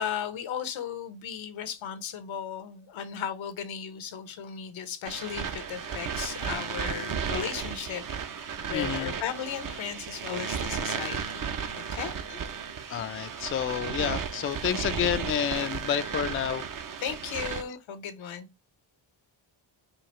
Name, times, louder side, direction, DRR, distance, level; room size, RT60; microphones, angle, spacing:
voice 1, 0.0-8.0 8.7-12.1 17.0-18.5, left 8 dB, 80° left, 0.8 m, -36 dB
sound 1, 5.0-17.6, right 7 dB, 45° right, 0.6 m, -34 dB
voice 2, 8.7-9.1 12.9-16.6, left 9 dB, 30° left, 0.3 m, -29 dB
4.7 x 2.4 x 3.0 m
cardioid pair, 75°, 47 cm